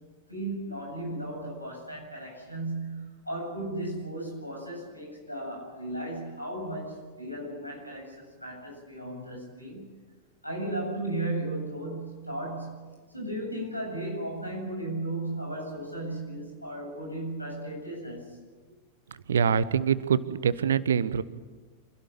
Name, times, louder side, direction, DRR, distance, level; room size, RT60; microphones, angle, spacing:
voice 1, 0.3-9.8 10.4-18.4, right 1 dB, 90° left, 1 dB, 8.0 m, -35 dB
voice 2, 19.3-21.2, right 7 dB, 65° right, 16 dB, 1.0 m, -24 dB
27.0 x 16.5 x 8.8 m, 1.3 s
figure-of-eight pair, 90°, 0 cm